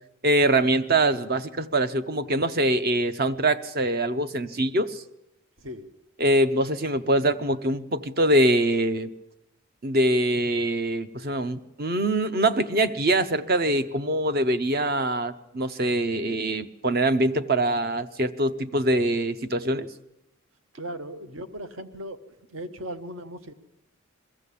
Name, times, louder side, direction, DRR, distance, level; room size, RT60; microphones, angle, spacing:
voice 1, 0.2-5.0 6.2-9.1 9.8-19.9, right 1 dB, 45° right, 11 dB, 0.8 m, -24 dB
voice 2, 5.6-5.9 20.7-22.2 22.5-23.5, right 1 dB, 65° right, 10 dB, 1.1 m, -37 dB
22.0 x 14.0 x 8.4 m, 0.90 s
head